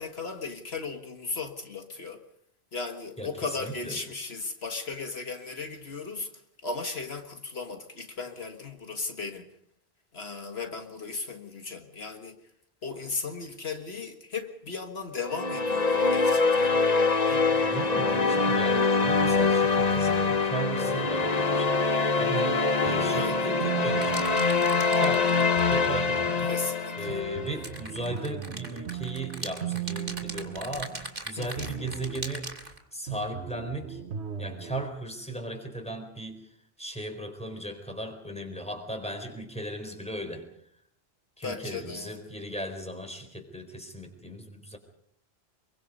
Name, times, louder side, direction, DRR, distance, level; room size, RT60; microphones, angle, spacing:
voice 1, 0.0-2.2 2.7-6.3 6.6-9.5 10.1-12.4 12.8-16.8 17.3-17.7 23.1-23.5 26.4-27.2 27.5-27.6 31.4-31.7 41.4-42.3, left 4 dB, 70° left, 5 dB, 1.9 m, -36 dB
voice 2, 3.2-4.0 17.6-24.5 24.9-26.5 27.0-32.5 32.9-34.0 34.4-36.4 36.8-40.5 41.4-44.8, right 1 dB, 5° left, 5 dB, 4.2 m, -37 dB
sound 1, 15.2-27.6, left 4 dB, 40° left, 1.2 m, -24 dB
sound 2, 22.9-25.1 25.6-26.4 27.1-31.2 31.6-32.4 33.1-34.9, right 9 dB, 90° right, 1.5 m, -38 dB
sound 3, 24.0-26.0 27.5-32.8, right 2 dB, 55° right, 3.1 m, -40 dB
26.0 x 23.5 x 5.4 m, 0.71 s
omnidirectional pair, 1.1 m